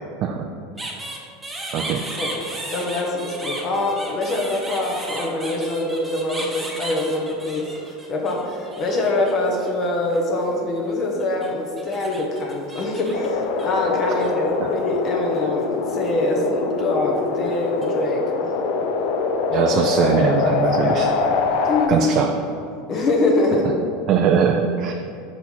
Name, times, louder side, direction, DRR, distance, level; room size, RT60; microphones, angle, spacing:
sound 1, 0.8-9.3 9.6-10.6 11.2-14.3 14.7-15.6 15.9-16.3 17.2-17.9, right 1 dB, 10° right, 0.9 m, -35 dB
voice 1, 2.7-7.7 8.1-18.6 20.8-22.1 22.9-23.7, left 2 dB, 40° left, 0 dB, 1.0 m, -24 dB
sound 2, 13.1-21.9, left 4 dB, 65° left, 0.5 m, -23 dB
voice 2, 19.5-21.1 21.9-22.3 24.1-24.9, right 7 dB, 50° right, 3 dB, 0.4 m, -20 dB
5.5 x 4.2 x 4.4 m, 2.5 s
supercardioid pair, 110°, 0 cm